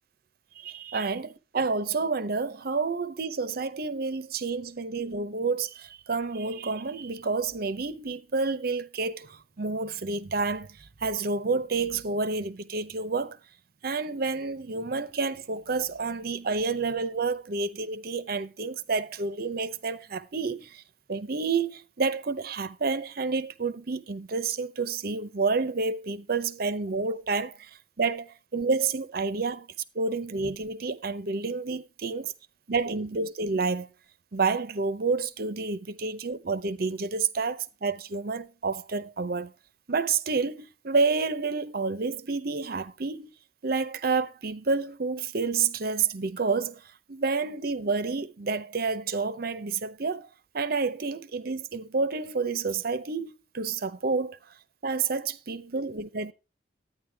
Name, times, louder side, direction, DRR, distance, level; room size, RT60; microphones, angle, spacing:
voice 1, 0.6-1.3 1.5-13.4 13.8-20.8 21.1-29.7 29.9-32.3 32.7-33.9 34.3-39.5 39.9-43.3 43.6-46.8 47.1-50.3 50.5-54.4 54.8-56.3, right 4 dB, 55° right, 0.7 m, -29 dB
12.0 x 9.4 x 3.5 m
head